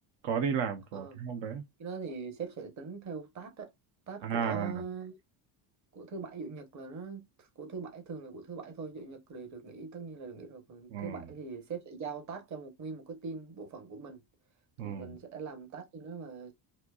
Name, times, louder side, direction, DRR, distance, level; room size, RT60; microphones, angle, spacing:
voice 1, 0.2-1.6 4.2-4.8 10.9-11.2 14.8-15.1, right 7 dB, 70° right, 0.9 m, -33 dB
voice 2, 1.8-3.7 4.1-5.2 5.9-14.2 14.8-16.5, right 5 dB, 40° right, 1.2 m, -42 dB
4.3 x 2.8 x 2.3 m
cardioid pair, 145°, 45 cm